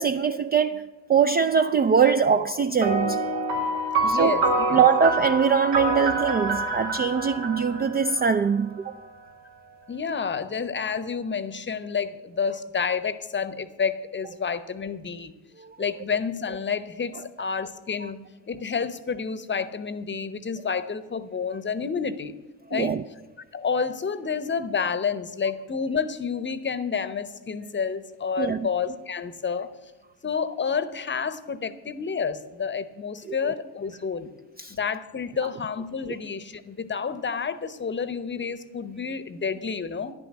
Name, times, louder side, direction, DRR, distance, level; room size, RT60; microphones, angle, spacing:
voice 1, 0.0-3.2 4.0-4.4 4.7-9.0 15.6-15.7 22.7-23.0 28.4-28.7 34.6-34.7, right 6 dB, 25° right, 0.4 m, -22 dB
sound 1, 2.8-8.6, right 2 dB, 70° right, 1.5 m, -26 dB
voice 2, 4.0-4.7 9.9-15.3 15.8-18.2 18.5-22.3 22.7-23.0 23.5-29.7 30.2-34.3 34.7-40.1, left 6 dB, 25° left, 0.8 m, -29 dB
10.5 x 6.1 x 8.7 m
hypercardioid pair, 55°, 44 cm